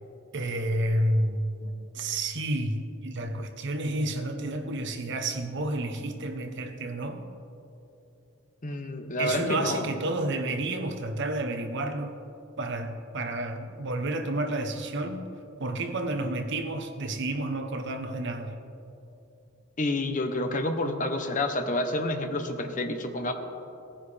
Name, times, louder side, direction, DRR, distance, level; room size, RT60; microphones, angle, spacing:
voice 1, 0.3-7.3 9.2-12.2 12.6-15.2 15.6-18.6, right 1 dB, 60° right, 6 dB, 0.9 m, -30 dB
voice 2, 8.6-9.9 19.8-23.3, left 2 dB, 40° left, 5 dB, 0.9 m, -29 dB
17.5 x 10.0 x 3.4 m, 2.8 s
head